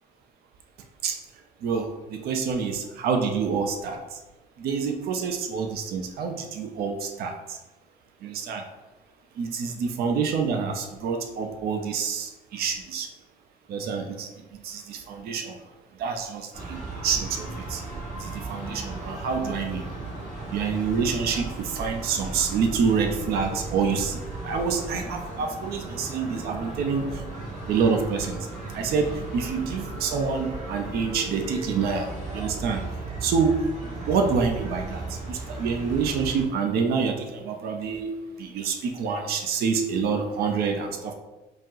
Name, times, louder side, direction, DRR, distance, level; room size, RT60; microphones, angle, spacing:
voice 1, 1.6-4.0 4.6-7.6 8.2-8.6 9.4-13.1 13.7-14.3 14.6-15.6 16.0-17.8 18.2-19.9 20.5-24.2 24.4-27.2 27.7-28.5 28.7-32.8 33.2-38.1 38.4-41.1, right 5 dB, 70° right, 4 dB, 0.6 m, -27 dB
sound 1, 16.5-36.5, right 2 dB, 45° right, 1.4 m, -36 dB
5.1 x 2.0 x 3.7 m, 1.1 s
cardioid pair, 110°, 17 cm